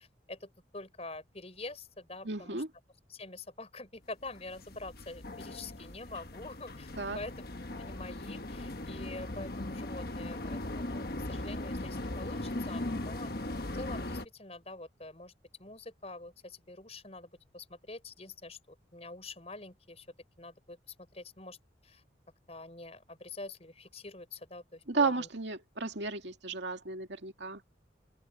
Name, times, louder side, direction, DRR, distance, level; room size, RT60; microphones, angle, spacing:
voice 1, 0.0-2.6 3.1-6.9 7.1-7.5 7.8-15.3 15.6-20.1 20.4-21.6 21.8-22.0 22.5-25.3, left 2 dB, 35° left, 5.2 m, -46 dB
voice 2, 2.2-2.7 7.0-7.2 24.9-27.6, right 4 dB, 70° right, 2.3 m, -33 dB
sound 1, 4.3-14.3, left 1 dB, 50° left, 1.3 m, -39 dB
open air
head